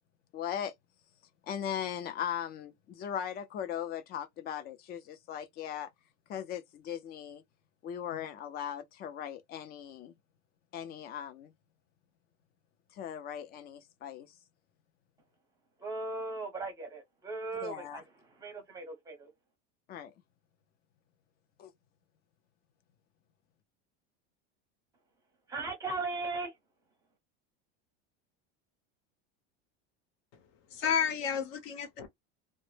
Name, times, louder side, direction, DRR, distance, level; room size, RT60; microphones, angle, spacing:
voice 1, 0.3-0.7 1.5-5.9 6.3-7.4 7.8-10.1 10.7-11.5 12.9-14.3 17.6-18.0 19.9-20.1 21.6-21.7, left 9 dB, 30° left, 0.4 m, -38 dB
voice 2, 15.8-18.0 18.4-19.3 25.5-26.5, right 3 dB, 10° right, 0.7 m, -37 dB
voice 3, 30.7-32.1, left 7 dB, 55° left, 0.8 m, -31 dB
2.1 x 2.0 x 3.1 m
supercardioid pair, 145°, 31 cm